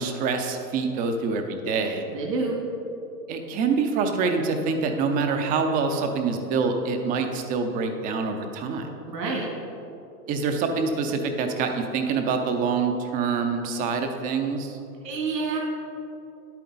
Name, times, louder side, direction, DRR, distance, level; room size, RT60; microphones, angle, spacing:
voice 1, 0.0-2.1 3.3-8.9 10.3-14.8, right 4 dB, 20° right, 5 dB, 0.5 m, -26 dB
voice 2, 2.1-2.5 9.1-9.5 15.0-15.6, right 4 dB, 75° right, -2 dB, 2.1 m, -28 dB
10.5 x 8.6 x 4.0 m, 2.8 s
hypercardioid pair, 125°, 50 cm